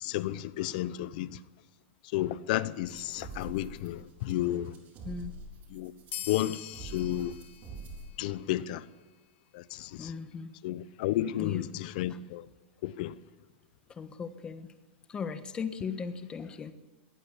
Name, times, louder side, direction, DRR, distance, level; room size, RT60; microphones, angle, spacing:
voice 1, 0.0-1.4 2.1-4.7 5.7-5.9 6.3-7.3 8.2-8.8 9.5-10.1 10.6-12.4 12.8-13.1, left 14 dB, 50° left, 0.9 m, -32 dB
sound 1, 2.8-8.1, right 3 dB, 30° right, 4.0 m, -45 dB
sound 2, 6.1-9.1, left 11 dB, 85° left, 1.9 m, -45 dB
voice 2, 10.0-10.5 11.4-11.6 12.1-12.2 13.9-14.7 15.1-16.7, left 5 dB, 15° left, 1.3 m, -38 dB
21.5 x 17.0 x 8.4 m
supercardioid pair, 165°, 6 cm